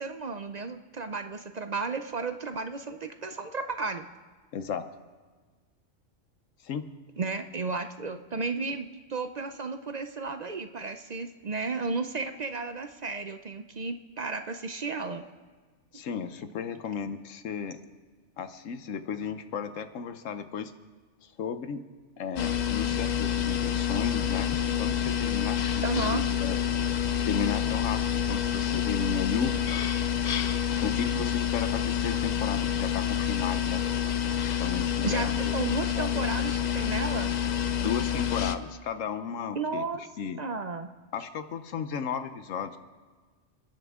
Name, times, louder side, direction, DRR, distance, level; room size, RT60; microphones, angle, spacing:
voice 1, 0.0-4.1 7.2-15.2 25.8-26.2 35.0-37.3 39.5-40.0 40.4-40.9, right 4 dB, 45° right, 8 dB, 0.6 m, -33 dB
voice 2, 4.5-4.9 6.6-6.9 15.9-17.8 18.4-20.7 21.2-21.8 22.2-26.6 27.2-29.5 30.8-33.8 34.6-35.5 36.0-36.2 37.8-39.8 40.2-40.4 41.1-42.8, left 6 dB, 80° left, 10 dB, 1.2 m, -34 dB
sound 1, 22.4-38.6, left 9 dB, 50° left, 0.6 m, -28 dB
30.0 x 10.5 x 3.6 m, 1.4 s
omnidirectional pair, 1.3 m